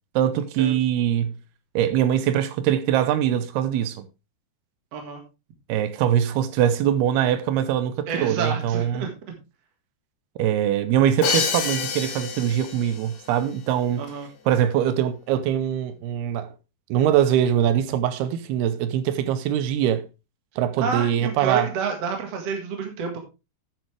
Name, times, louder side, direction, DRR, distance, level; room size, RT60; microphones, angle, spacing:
voice 1, 0.2-1.4 1.8-4.1 5.7-9.1 10.4-14.0 14.5-16.5 16.9-20.1 20.6-21.7, right 10 dB, 85° right, 2.7 m, -22 dB
voice 2, 4.9-5.2 8.1-9.1 14.0-14.3 20.8-23.2, right 5 dB, 50° right, 2.5 m, -29 dB
Crash cymbal, 11.2-13.1, left 6 dB, 60° left, 2.2 m, -27 dB
10.5 x 8.5 x 3.3 m
omnidirectional pair, 4.7 m